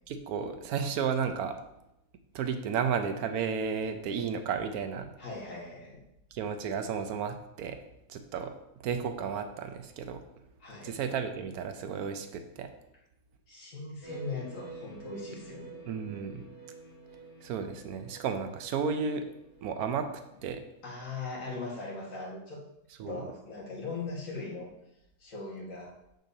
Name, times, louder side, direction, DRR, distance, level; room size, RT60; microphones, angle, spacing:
voice 1, 0.1-1.6 2.3-5.2 6.3-7.8 8.1-8.5 8.8-10.2 10.8-12.7 15.9-16.4 17.4-19.3 19.6-20.1 20.4-20.6 23.0-23.2, right 6 dB, 85° right, 7 dB, 1.1 m, -33 dB
voice 2, 5.2-6.0 10.6-11.0 13.5-15.9 20.8-22.6 23.1-24.7 25.2-25.9, left 3 dB, 60° left, -5 dB, 2.0 m, -40 dB
sound 1, 14.0-20.7, right 3 dB, 30° left, 1.0 m, -49 dB
6.6 x 6.1 x 2.7 m, 0.86 s
omnidirectional pair, 1.5 m